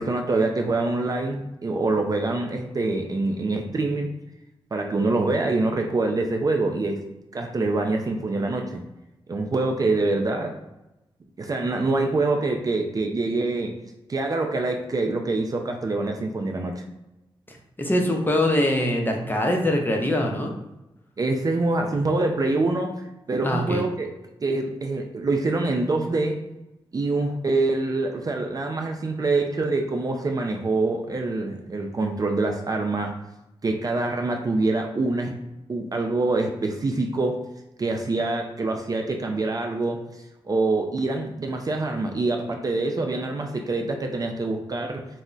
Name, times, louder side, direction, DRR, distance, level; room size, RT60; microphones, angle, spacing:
voice 1, 0.0-4.1 4.7-7.0 7.3-8.8 9.3-10.6 11.4-13.8 14.1-16.9 21.2-22.9 23.3-24.1 24.4-26.4 26.9-33.2 33.6-35.4 35.7-37.4 37.8-40.0 40.4-45.1, right 2 dB, 35° right, 3 dB, 0.4 m, -25 dB
voice 2, 17.5-20.5 23.4-23.8, left 1 dB, 20° left, 1 dB, 0.6 m, -23 dB
2.1 x 2.1 x 3.8 m, 0.95 s
cardioid pair, 50°, 10 cm